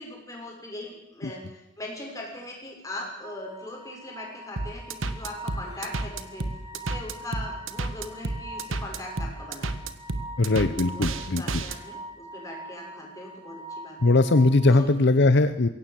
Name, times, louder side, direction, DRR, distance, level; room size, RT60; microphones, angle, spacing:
voice 1, 0.0-1.4 1.8-6.4 6.7-9.9 10.6-14.1 14.7-14.8, left 1 dB, 15° left, -1 dB, 6.6 m, -40 dB
sound 1, 3.2-14.8, right 1 dB, 15° right, 7.2 m, -43 dB
sound 2, 4.6-11.8, right 2 dB, 85° right, 1.4 m, -31 dB
voice 2, 10.4-11.6 14.0-15.7, left 2 dB, 60° left, 12 dB, 0.8 m, -20 dB
22.5 x 17.5 x 7.7 m, 0.89 s
head